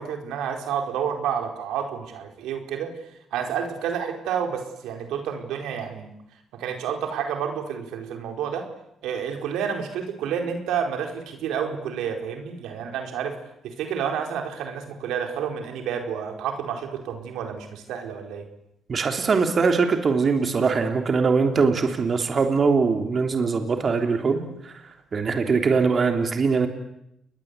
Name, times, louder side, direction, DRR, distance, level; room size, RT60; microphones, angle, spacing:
voice 1, 0.0-2.9 3.3-6.1 6.6-8.7 9.0-13.3 13.6-18.4, right 7 dB, 90° right, 4 dB, 4.6 m, -29 dB
voice 2, 18.9-24.7 25.1-26.7, right 4 dB, 45° right, 5 dB, 3.4 m, -22 dB
30.0 x 21.5 x 8.4 m, 0.78 s
cardioid pair, 90°, 0 cm